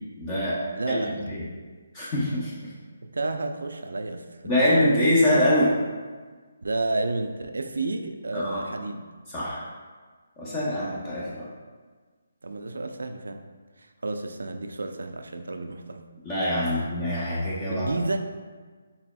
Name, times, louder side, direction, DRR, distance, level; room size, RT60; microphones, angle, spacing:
voice 1, 0.2-0.6 0.9-1.4 1.9-2.7 4.4-5.8 8.3-8.6 9.3-9.6 10.4-11.5 16.2-17.9, left 1 dB, 25° left, -8 dB, 0.8 m, -24 dB
voice 2, 0.8-1.2 3.0-4.3 6.6-9.0 12.4-13.4 13.8-16.0 17.7-18.2, right 2 dB, 85° right, 6 dB, 0.4 m, -31 dB
4.1 x 3.8 x 2.3 m, 1.4 s
hypercardioid pair, 160°, 0 cm